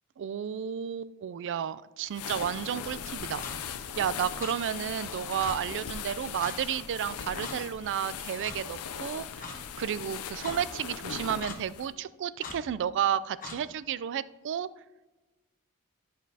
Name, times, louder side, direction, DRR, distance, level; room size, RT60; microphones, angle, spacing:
voice 1, 0.2-3.4 4.0-14.7, right 9 dB, 55° right, 17 dB, 0.3 m, -32 dB
sound 1, 2.1-11.9, left 7 dB, 70° left, 0.5 m, -39 dB
Clock, 3.4-3.6 4.4-4.6 5.4-5.6 6.4-6.6 7.4-7.6 8.4-8.6 9.4-9.6 10.4-10.6 11.4-11.6 12.4-12.6 13.4-13.6, left 4 dB, 40° left, 1.2 m, -40 dB
11.5 x 6.1 x 2.8 m, 1.1 s
head